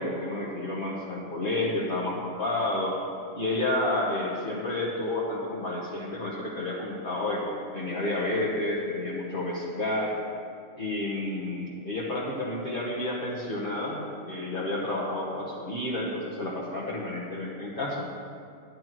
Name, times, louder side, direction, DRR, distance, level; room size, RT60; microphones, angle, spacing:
voice 1, 0.0-3.0 3.3-10.1 10.8-18.0, left 2 dB, 45° left, -6 dB, 1.3 m, -30 dB
12.0 x 10.5 x 3.0 m, 2.3 s
omnidirectional pair, 1.3 m